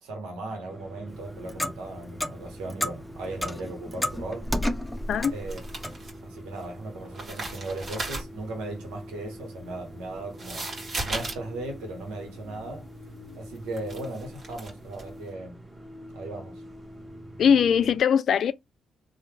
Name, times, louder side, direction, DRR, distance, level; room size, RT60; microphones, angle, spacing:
voice 1, 0.0-4.5 5.3-5.6 6.2-10.7 11.0-12.9 13.3-15.6 16.1-16.6, right 2 dB, 85° right, 0.8 m, -37 dB
sound 1, 0.7-18.0, equal, 20° right, 1.2 m, -45 dB
Clock, 1.1-6.1, left 1 dB, ahead, 0.6 m, -32 dB
sound 2, 5.0-6.7 7.0-15.2, right 2 dB, 55° right, 1.3 m, -37 dB
voice 2, 17.4-18.5, left 7 dB, 65° left, 0.3 m, -21 dB
3.1 x 2.1 x 3.3 m
hypercardioid pair, 50°, 0 cm